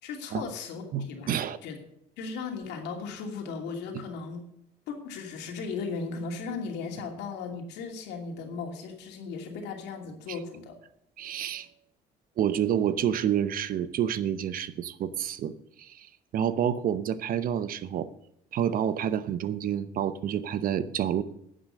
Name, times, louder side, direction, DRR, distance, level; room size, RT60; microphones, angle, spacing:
voice 1, 0.0-1.3 1.6-1.8 2.2-4.4 4.9-10.7, left 5 dB, 85° left, 3 dB, 2.7 m, -36 dB
voice 2, 0.9-1.6 10.3-10.4 11.2-11.7 12.4-15.5 15.8-16.1 16.3-18.1 18.5-21.2, right 9 dB, 55° right, 14 dB, 0.8 m, -28 dB
11.0 x 7.8 x 6.6 m, 0.75 s
cardioid pair, 110°, 17 cm